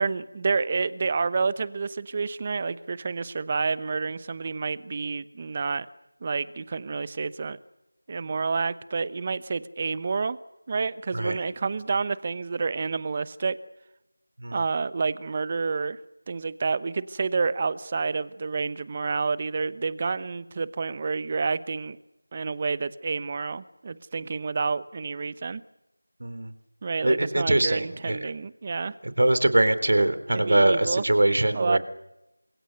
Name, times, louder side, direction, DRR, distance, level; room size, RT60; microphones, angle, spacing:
voice 1, 0.0-5.9 6.2-7.6 8.1-10.4 10.7-13.6 14.5-16.0 16.3-22.0 22.3-25.6 26.8-28.9 30.3-31.0 31.5-31.8, right 4 dB, 20° right, 17 dB, 0.9 m, -29 dB
voice 2, 27.0-28.3 29.2-31.8, right 1 dB, 50° right, 12 dB, 3.7 m, -22 dB
28.5 x 26.5 x 6.7 m, 0.89 s
figure-of-eight pair, 175°, 0 cm